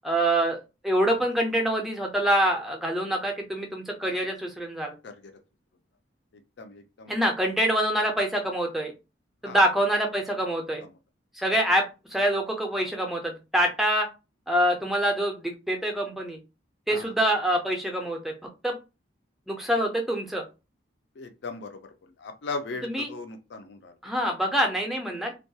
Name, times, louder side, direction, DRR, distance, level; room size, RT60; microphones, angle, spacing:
voice 1, 0.0-0.6 0.8-4.9 7.1-8.9 9.4-10.8 11.3-11.8 12.1-14.1 14.5-16.4 16.9-18.3 18.6-18.7 19.5-20.4 22.8-23.1 24.0-25.3, right 1 dB, ahead, 1 dB, 0.4 m, -25 dB
voice 2, 6.6-7.1 9.4-9.6 16.9-17.1 21.2-21.8 22.2-23.9, left 3 dB, 60° left, 7 dB, 0.4 m, -37 dB
2.2 x 2.2 x 2.7 m, 0.28 s
head